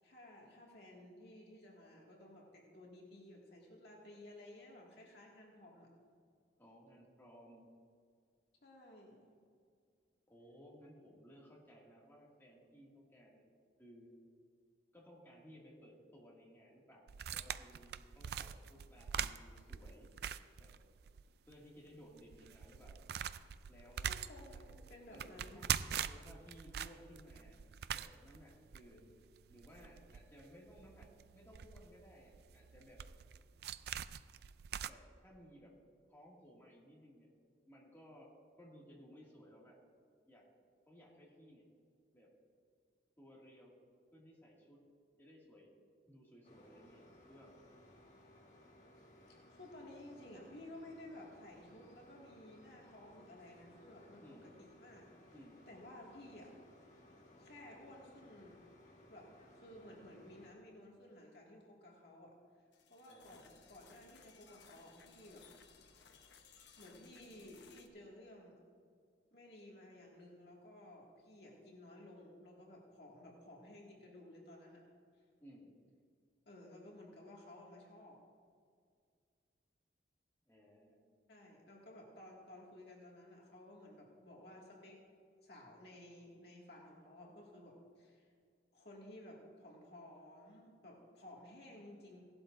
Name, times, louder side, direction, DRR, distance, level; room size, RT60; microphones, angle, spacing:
voice 1, 0.0-5.9 8.6-9.3 24.0-25.6 49.3-55.3 55.7-56.5 57.4-58.6 59.1-59.3 59.5-62.3 62.9-65.5 66.8-68.5 69.3-74.8 76.5-78.2 81.3-85.0 85.4-88.3 88.7-92.2, left 1 dB, 60° left, -3 dB, 2.0 m, -55 dB
voice 2, 6.6-7.6 10.3-13.5 13.8-14.1 14.9-20.1 20.6-20.7 21.5-23.0 23.7-24.1 24.5-24.6 25.1-25.7 26.1-27.6 27.9-29.2 29.5-33.0 34.8-35.8 36.1-37.3 37.7-39.8 40.3-40.5 40.9-41.7 42.1-42.3 43.2-43.7 44.1-44.8 45.2-45.7 46.1-47.0 47.3-47.5 54.2-54.5 55.3-55.7 63.1-63.6 75.4-75.7 80.5-81.0, equal, 15° left, -4 dB, 2.1 m, -59 dB
sound 1, 17.1-21.2 21.5-21.6 22.1-34.9, right 9 dB, 60° right, 0.3 m, -43 dB
sound 2, 46.4-60.5, left 1 dB, 45° left, 1.7 m, -62 dB
sound 3, 62.7-67.9, left 6 dB, 75° left, 0.9 m, -62 dB
17.0 x 12.0 x 2.6 m, 2.1 s
head